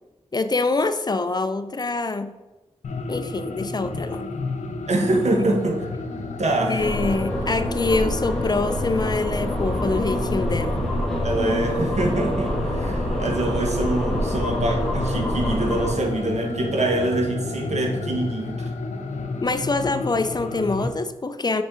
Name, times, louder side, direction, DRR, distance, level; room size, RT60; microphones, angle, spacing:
voice 1, 0.3-2.4 3.1-4.2 6.0-6.1 6.7-10.9 19.4-21.6, left 3 dB, 35° left, 10 dB, 0.4 m, -25 dB
sound 1, 2.8-20.9, left 3 dB, 90° left, 0.6 m, -31 dB
voice 2, 4.9-5.8 6.4-6.9 11.2-18.6, right 2 dB, 70° right, 2 dB, 1.1 m, -24 dB
sound 2, 6.8-16.0, equal, ahead, 1.5 m, -27 dB
5.4 x 5.4 x 3.7 m, 1.1 s
wide cardioid pair, 70°, 12 cm